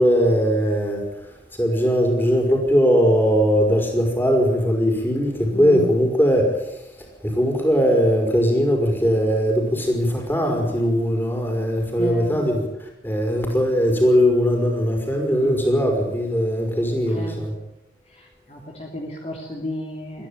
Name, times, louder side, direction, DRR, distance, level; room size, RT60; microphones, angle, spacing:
voice 1, 0.0-6.8 7.2-17.6, equal, 10° left, 2 dB, 5.4 m, -20 dB
voice 2, 5.5-5.9 12.0-12.3 17.1-17.4 18.1-20.3, equal, 35° left, 0 dB, 2.9 m, -32 dB
22.5 x 15.0 x 9.0 m, 0.90 s
head